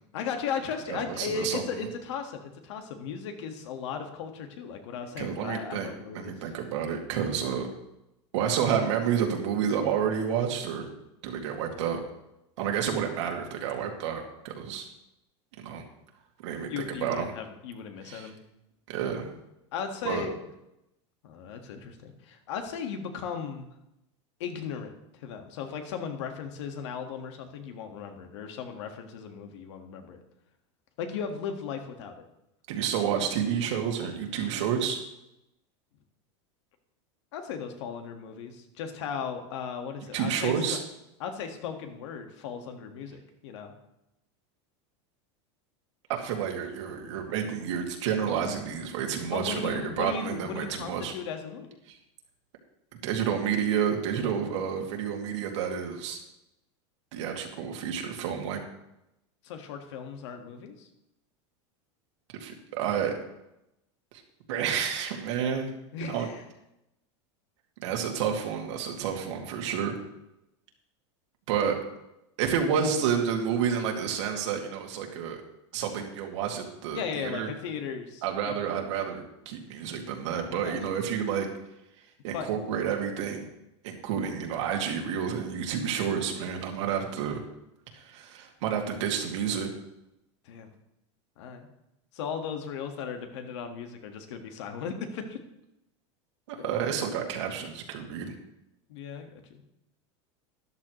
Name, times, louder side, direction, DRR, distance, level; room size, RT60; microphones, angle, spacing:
voice 1, 0.1-6.3 16.7-18.4 19.7-20.4 21.2-23.7 24.4-30.2 31.0-32.2 37.3-40.8 41.2-43.7 49.3-51.8 59.4-60.9 65.9-66.4 76.9-78.6 80.5-81.0 82.3-82.5 90.4-90.7 91.4-91.7 92.1-95.4 96.6-96.8 98.9-99.6, left 6 dB, 75° left, 5 dB, 1.7 m, -37 dB
voice 2, 0.9-1.9 5.2-7.7 8.3-10.9 11.2-12.0 12.6-14.9 15.6-15.8 16.4-17.3 18.0-18.3 18.9-19.3 20.0-20.3 32.7-35.0 40.1-40.8 46.1-51.1 51.9-52.0 53.0-56.2 57.1-58.6 62.4-63.1 64.5-65.7 66.0-66.3 67.8-69.9 71.5-71.8 72.4-75.4 75.7-77.5 78.2-81.5 82.2-83.5 83.8-87.4 87.9-89.7 96.5-98.3, right 7 dB, 75° right, 2 dB, 2.2 m, -30 dB
13.0 x 10.5 x 3.1 m, 0.88 s
supercardioid pair, 145°, 15 cm